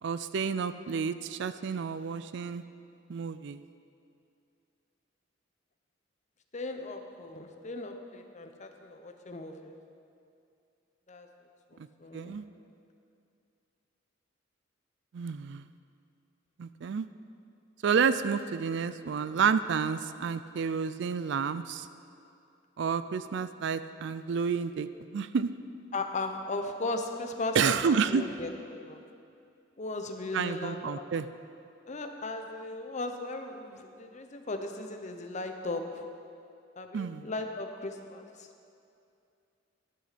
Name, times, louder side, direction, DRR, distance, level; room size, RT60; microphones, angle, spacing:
voice 1, 0.0-2.6 3.1-3.6 12.1-12.4 15.1-15.6 16.6-17.1 17.8-21.9 22.8-24.9 25.1-25.5 27.5-28.2 30.3-31.3 36.9-37.3, right 6 dB, 65° right, 13 dB, 0.4 m, -30 dB
voice 2, 6.5-9.8 11.1-11.3 11.7-12.4 25.9-29.0 29.8-31.0 31.9-36.0 36.8-38.5, left 2 dB, 40° left, 5 dB, 0.8 m, -37 dB
11.5 x 10.5 x 4.2 m, 2.5 s
head